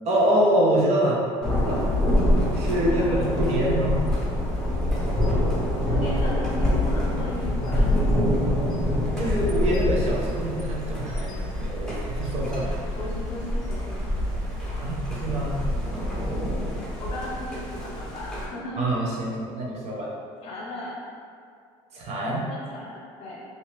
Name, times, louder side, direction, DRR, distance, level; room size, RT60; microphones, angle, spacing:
voice 1, 0.1-1.2 1.5-1.9 2.5-4.0 9.2-12.8 14.8-15.6 18.8-20.1 21.9-22.5, right 1 dB, 55° right, -4 dB, 0.8 m, -25 dB
Thunder, 1.4-18.5, left 1 dB, 5° left, 0.8 m, -26 dB
voice 2, 2.9-3.2 5.7-7.9 12.9-14.1 17.0-18.8 20.4-21.0 22.4-23.4, left 1 dB, 50° left, -4 dB, 1.0 m, -36 dB
2.8 x 2.7 x 3.3 m, 2.3 s
supercardioid pair, 110°, 13 cm